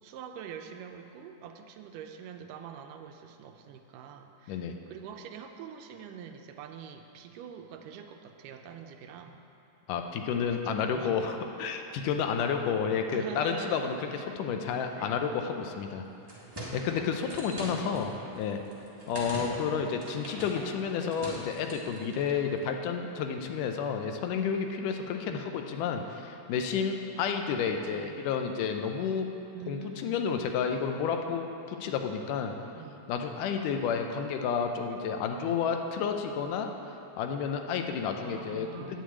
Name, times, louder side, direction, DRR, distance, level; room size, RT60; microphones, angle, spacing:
voice 1, 0.0-9.4 10.6-11.4 13.1-14.4 14.9-15.2 19.1-19.9 21.0-21.2 25.3-25.5 27.9-28.2 29.5-30.2 32.7-33.1 35.4-35.9 38.2-39.0, right 7 dB, 90° right, 5 dB, 2.2 m, -45 dB
voice 2, 9.9-14.0 14.4-16.0 16.7-18.6 19.1-29.3 29.7-32.6 33.1-36.7 37.2-39.0, left 6 dB, 85° left, 5 dB, 2.2 m, -31 dB
sound 1, 16.0-22.4, right 1 dB, 20° right, 0.6 m, -42 dB
9.2 x 6.6 x 8.3 m, 2.7 s
omnidirectional pair, 3.8 m